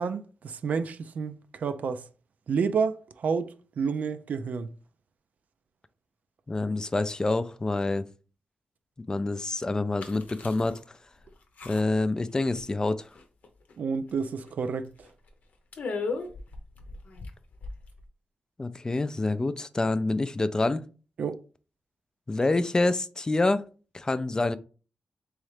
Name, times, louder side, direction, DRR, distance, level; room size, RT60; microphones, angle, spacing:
voice 1, 0.0-2.0 2.5-4.7 13.8-14.9 21.2-21.4, right 5 dB, 75° right, 0.4 m, -30 dB
voice 2, 6.5-8.1 9.1-10.8 11.7-13.1 18.6-20.8 22.3-23.6 23.9-24.6, left 2 dB, 25° left, 0.3 m, -27 dB
sound 1, 10.0-10.8 11.2-11.3 11.6-12.1 12.4-12.9 13.1-13.7 14.1-14.2 14.5-14.6 15.0-15.3 15.7-18.0, left 4 dB, 75° left, 0.7 m, -37 dB
3.7 x 3.1 x 3.2 m
cardioid pair, 75°, 3 cm